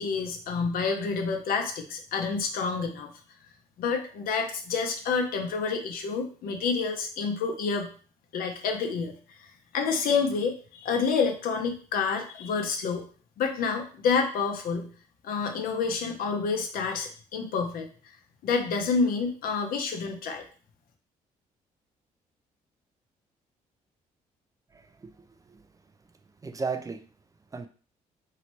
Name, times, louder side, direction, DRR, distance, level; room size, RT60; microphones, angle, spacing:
voice 1, 0.0-3.1 3.8-7.9 8.3-9.1 9.4-13.0 13.4-14.9 15.2-17.9 18.4-20.4, left 5 dB, 75° left, 4 dB, 0.7 m, -28 dB
voice 2, 24.7-25.7 26.4-27.1 27.5-27.7, right 4 dB, 20° right, 8 dB, 0.4 m, -36 dB
3.0 x 2.8 x 2.9 m, 0.41 s
supercardioid pair, 75°, 15 cm